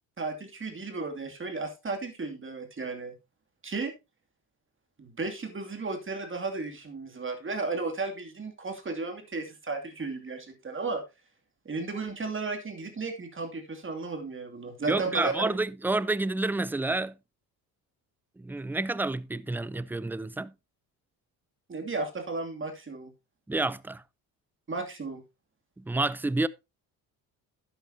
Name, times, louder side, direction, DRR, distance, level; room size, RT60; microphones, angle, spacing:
voice 1, 0.2-3.1 3.6-3.9 5.0-11.0 11.6-15.6 21.7-23.1 24.7-25.2, right 3 dB, 30° right, 2.6 m, -34 dB
voice 2, 14.9-17.1 18.4-20.5 23.5-24.0 25.8-26.5, right 2 dB, 5° right, 0.4 m, -29 dB
11.5 x 9.0 x 2.8 m
supercardioid pair, 80°, 41 cm